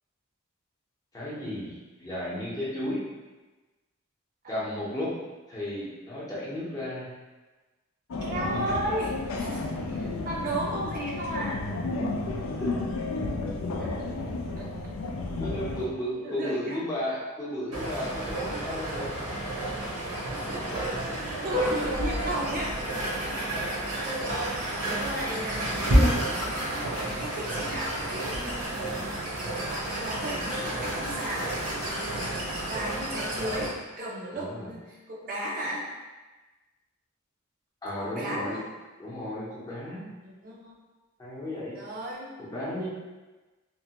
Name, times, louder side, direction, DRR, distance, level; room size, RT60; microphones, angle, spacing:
voice 1, 1.1-3.1 4.5-5.1 5.5-7.1 12.6-12.7 13.4-13.5 15.4-19.1 23.1-23.5 27.0-27.3 28.7-29.1 32.1-32.3 34.3-34.7 37.8-38.6 39.0-40.1 41.2-41.8 42.4-42.9, left 1 dB, 15° left, -8 dB, 0.7 m, -34 dB
sound 1, 8.1-15.9, left 2 dB, 80° left, 0.4 m, -32 dB
voice 2, 8.2-11.6 12.2-12.3 13.8-14.2 14.6-15.0 16.2-16.8 20.3-20.8 21.4-22.8 23.3-28.4 29.5-31.5 32.3-35.8 38.0-38.6 40.2-40.7 41.7-42.6, right 1 dB, 40° right, -4 dB, 0.4 m, -35 dB
sound 2, 17.7-33.7, right 1 dB, 85° right, 0.8 m, -30 dB
2.9 x 2.1 x 2.8 m, 1.2 s
head